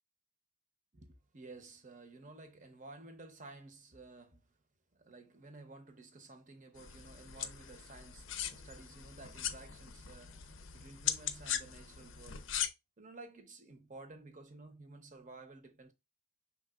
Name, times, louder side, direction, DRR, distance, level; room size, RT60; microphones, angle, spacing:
voice 1, 0.9-4.4 4.9-12.5 13.0-15.9, right 3 dB, 40° right, 0.8 m, -53 dB
sound 1, 6.8-12.7, left 9 dB, 65° left, 0.6 m, -40 dB
5.9 x 3.5 x 2.4 m
head